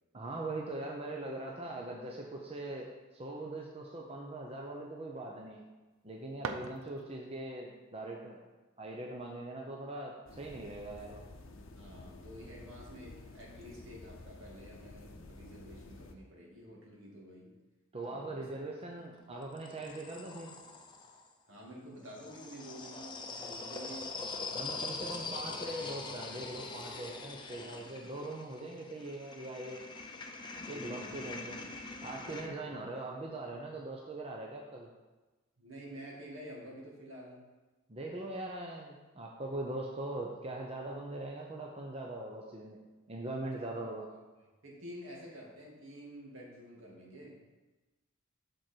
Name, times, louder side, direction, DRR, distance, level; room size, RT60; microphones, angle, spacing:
voice 1, 0.1-5.6 6.0-8.4 8.8-11.3 17.9-20.6 24.5-29.9 30.6-31.6 32.0-34.9 37.9-42.8 43.1-44.1, right 2 dB, 30° right, -1 dB, 0.7 m, -41 dB
sound 1, 5.9-7.4, right 4 dB, 85° right, 0.6 m, -43 dB
sound 2, 10.3-16.1, left 2 dB, 70° left, 0.8 m, -51 dB
voice 2, 11.8-17.5 18.1-18.4 21.5-24.2 24.6-25.9 27.5-28.2 30.6-31.2 32.3-32.8 35.6-37.4 43.6-43.7 44.1-44.2 44.6-47.3, equal, 70° right, -3 dB, 2.3 m, -50 dB
sound 3, 18.8-21.2 22.1-32.5, left 3 dB, 20° left, 0.7 m, -43 dB
7.7 x 6.2 x 4.5 m, 1.2 s
head